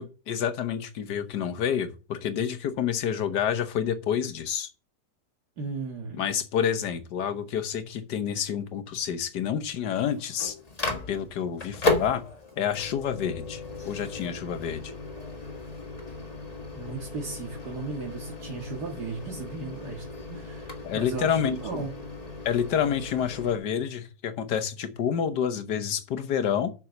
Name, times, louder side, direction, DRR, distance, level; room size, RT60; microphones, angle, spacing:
voice 1, 0.0-4.7 6.1-10.6 11.1-12.2 12.6-14.9 20.8-21.8 22.5-26.7, left 8 dB, 90° left, 1.6 m, -28 dB
voice 2, 5.6-6.2 16.8-20.0 20.3-21.9, right 4 dB, 75° right, 2.3 m, -36 dB
Microwave oven, 9.9-23.6, left 2 dB, 25° left, 1.5 m, -35 dB
7.2 x 6.2 x 7.0 m
omnidirectional pair, 1.7 m